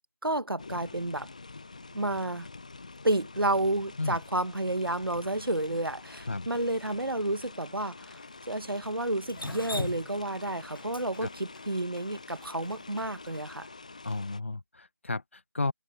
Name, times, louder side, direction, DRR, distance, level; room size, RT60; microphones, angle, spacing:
voice 1, 0.2-1.3 1.9-2.5 3.0-8.2 8.5-13.7, right 1 dB, 80° right, 1.9 m, -30 dB
sound 1, 0.6-14.4, left 3 dB, 20° left, 1.0 m, -47 dB
Drip, 9.3-13.4, left 2 dB, 70° left, 0.9 m, -39 dB
voice 2, 14.0-15.7, left 3 dB, 35° left, 1.4 m, -33 dB
open air
figure-of-eight pair, 170°, 12 cm